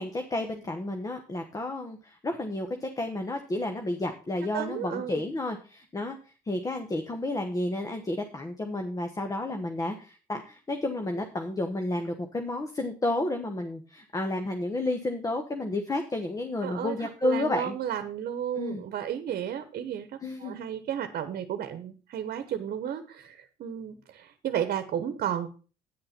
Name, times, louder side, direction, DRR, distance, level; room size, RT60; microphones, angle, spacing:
voice 1, 0.0-17.8 18.6-18.8 20.2-20.5, left 2 dB, 20° left, 5 dB, 1.1 m, -31 dB
voice 2, 4.5-5.2 16.6-25.5, right 9 dB, 60° right, 10 dB, 1.1 m, -33 dB
9.5 x 6.5 x 5.9 m, 0.36 s
cardioid pair, 110°, 17 cm